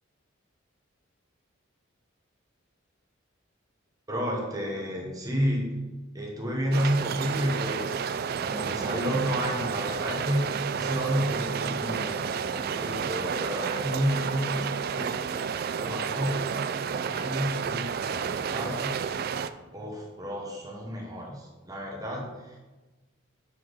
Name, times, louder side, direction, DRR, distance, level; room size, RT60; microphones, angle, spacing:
voice 1, 4.1-5.8 6.1-8.0 8.4-15.4 15.8-16.6 16.9-19.0 19.7-22.5, equal, 15° right, -1 dB, 1.1 m, -31 dB
sound 1, 6.7-19.5, right 6 dB, 50° right, 0.3 m, -31 dB
7.9 x 5.9 x 4.0 m, 1.2 s
head